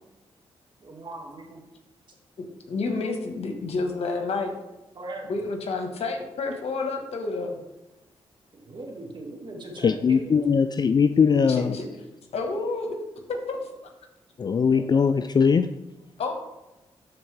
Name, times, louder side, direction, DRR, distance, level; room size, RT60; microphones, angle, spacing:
voice 1, 0.8-1.6 4.9-5.3 8.6-10.5 12.9-13.2 14.7-15.0, right 2 dB, 45° right, 0 dB, 2.0 m, -39 dB
voice 2, 2.7-4.5 5.3-7.6 11.5-11.9 12.3-13.0 13.3-13.6 16.2-16.3, left 3 dB, 70° left, 4 dB, 1.4 m, -29 dB
voice 3, 9.8-11.8 14.4-15.7, left 6 dB, 40° left, 10 dB, 0.4 m, -20 dB
12.5 x 4.2 x 3.4 m, 0.98 s
cardioid pair, 60°, 11 cm